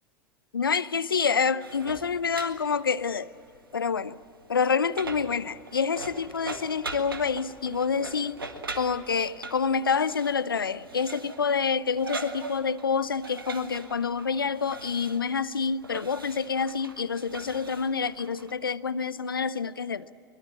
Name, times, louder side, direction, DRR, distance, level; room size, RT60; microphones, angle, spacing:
voice 1, 0.5-3.3 3.7-4.2 4.5-8.4 8.8-20.1, left 6 dB, 85° left, 17 dB, 0.6 m, -27 dB
sound 1, 1.6-18.5, right 3 dB, 85° right, 1.8 m, -42 dB
23.5 x 21.5 x 7.6 m, 2.5 s
figure-of-eight pair, 80°, 12 cm